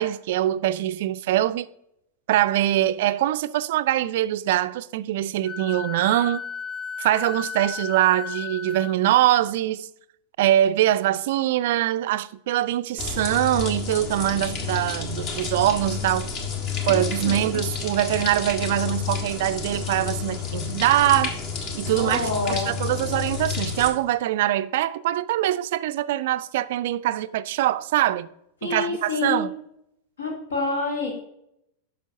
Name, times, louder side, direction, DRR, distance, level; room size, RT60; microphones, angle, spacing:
voice 1, 0.0-1.7 2.3-6.4 7.0-9.9 10.4-16.3 16.9-21.3 21.7-28.3 28.6-29.5, right 13 dB, 55° right, 0.3 m, -23 dB
Wind instrument woodwind instrument, 5.4-9.0, left 6 dB, 5° left, 0.5 m, -34 dB
sound 1, 13.0-23.9, left 6 dB, 40° left, 1.2 m, -30 dB
voice 2, 16.9-17.6 21.9-22.7 28.6-29.5 30.2-31.1, left 3 dB, 70° left, 1.7 m, -28 dB
10.5 x 6.0 x 2.7 m
figure-of-eight pair, 90°, 0 cm